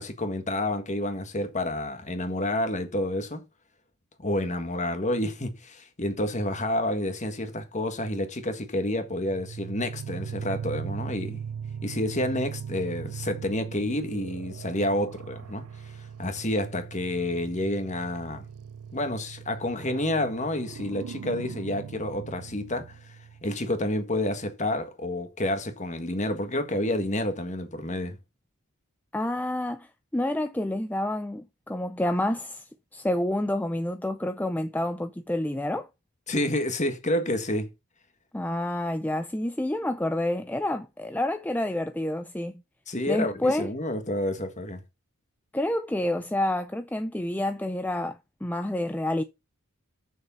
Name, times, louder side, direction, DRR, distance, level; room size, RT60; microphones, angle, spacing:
voice 1, 0.0-3.4 4.2-11.4 11.8-18.4 18.9-22.9 23.4-28.2 36.3-37.7 42.9-44.8, left 1 dB, 35° left, 1.6 m, -29 dB
sound 1, 9.0-23.6, right 7 dB, 85° right, 0.4 m, -39 dB
voice 2, 29.1-32.6 32.9-35.9 38.3-42.5 43.1-43.7 45.5-49.2, left 1 dB, 10° left, 0.5 m, -28 dB
7.2 x 6.4 x 5.6 m
head